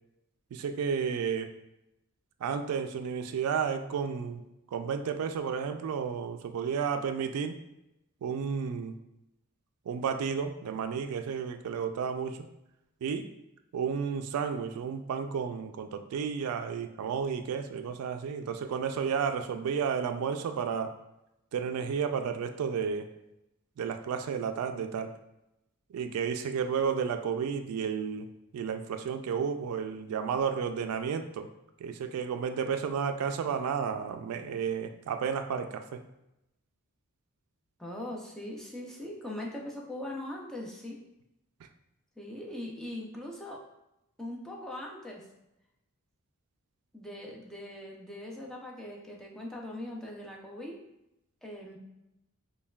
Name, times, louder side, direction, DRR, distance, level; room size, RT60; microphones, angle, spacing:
voice 1, 0.5-1.5 2.4-4.4 4.7-7.6 8.2-8.9 9.9-12.5 13.0-13.3 13.7-20.9 21.5-23.1 23.8-25.1 25.9-28.3 28.5-31.5 31.8-36.0 41.6-41.7, right 6 dB, 80° right, 8 dB, 0.3 m, -32 dB
voice 2, 37.8-41.0 42.2-43.6 44.2-45.2 46.9-50.8 51.4-51.8, left 1 dB, 5° left, -2 dB, 0.4 m, -40 dB
5.4 x 2.2 x 2.3 m, 0.88 s
head